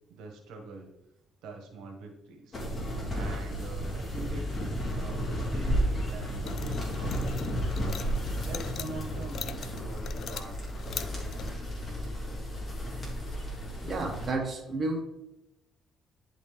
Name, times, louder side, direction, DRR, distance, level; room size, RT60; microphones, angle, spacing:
voice 1, 0.1-0.9 1.4-2.6 3.1-4.5 4.9-7.8 8.2-11.2, right 3 dB, 80° right, 2 dB, 1.3 m, -45 dB
sound 1, 2.5-14.3, equal, 35° left, 2.6 m, -33 dB
tighting a screw, 6.4-11.5, left 8 dB, 60° left, 0.4 m, -42 dB
voice 2, 13.8-15.0, right 2 dB, 30° right, 1 dB, 1.4 m, -31 dB
10.0 x 4.1 x 3.5 m, 0.91 s
cardioid pair, 95°, 0 cm